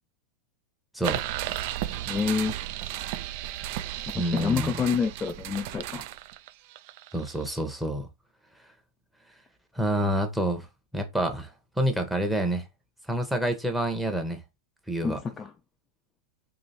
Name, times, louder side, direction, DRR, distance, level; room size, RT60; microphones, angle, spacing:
sound 1, 1.0-7.6, right 13 dB, 55° right, 0.3 m, -34 dB
voice 1, 2.1-2.6 4.1-6.0 15.0-15.5, left 6 dB, 20° left, 0.4 m, -28 dB
voice 2, 4.1-4.7 7.1-8.1 9.7-10.7 10.9-11.5 11.8-12.6 13.1-14.4 14.9-15.2, right 1 dB, 5° right, 0.9 m, -27 dB
3.0 x 3.0 x 4.2 m
hypercardioid pair, 110°, 0 cm